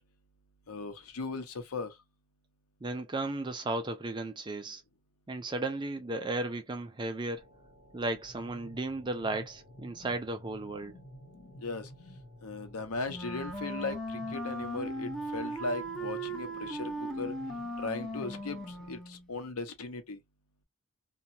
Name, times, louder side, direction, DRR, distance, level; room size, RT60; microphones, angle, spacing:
voice 1, 0.7-1.9 11.6-11.9 12.4-17.3 17.8-18.6 18.9-20.2, left 3 dB, 80° left, 0.8 m, -37 dB
voice 2, 2.8-4.8 5.3-7.5 7.9-11.0, right 2 dB, 20° right, 0.4 m, -35 dB
sound 1, 7.4-18.9, equal, 60° left, 1.1 m, -52 dB
Wind instrument woodwind instrument, 13.1-19.3, right 1 dB, ahead, 0.7 m, -38 dB
2.8 x 2.3 x 2.6 m
head